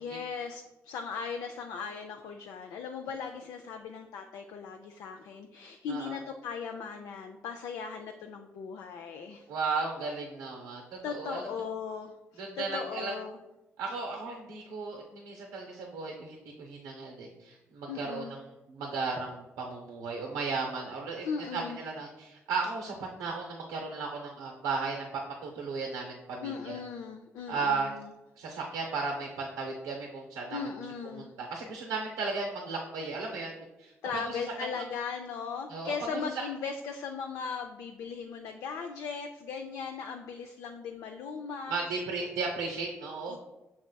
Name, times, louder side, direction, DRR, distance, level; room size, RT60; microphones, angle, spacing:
voice 1, 0.0-9.5 11.0-13.4 17.9-18.3 21.2-21.8 26.4-28.1 30.5-31.3 34.0-42.0 43.3-43.4, left 6 dB, 75° left, 4 dB, 0.3 m, -38 dB
voice 2, 9.5-11.4 12.4-13.1 13.8-18.2 18.7-21.3 21.5-26.8 27.5-27.9 28.4-30.6 31.2-33.5 33.8-34.4 34.7-34.8 35.7-36.4 41.7-43.4, right 4 dB, 90° right, 0 dB, 0.5 m, -35 dB
6.5 x 3.5 x 2.2 m, 1.0 s
hypercardioid pair, 45°, 6 cm